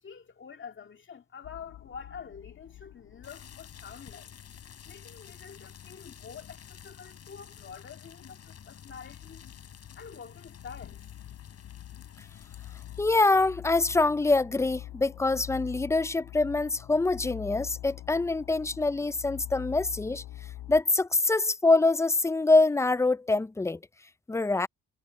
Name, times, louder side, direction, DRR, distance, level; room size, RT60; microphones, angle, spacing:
voice 1, 0.0-4.3 4.8-9.5 10.0-11.0, left 6 dB, 40° left, 2.1 m, -47 dB
sound 1, 1.4-20.8, left 13 dB, 85° left, 3.6 m, -46 dB
sound 2, 3.2-13.0, left 8 dB, 55° left, 3.8 m, -50 dB
voice 2, 13.0-20.2 20.7-23.8 24.3-24.7, left 3 dB, 10° left, 0.5 m, -25 dB
cardioid pair, 90°, 30 cm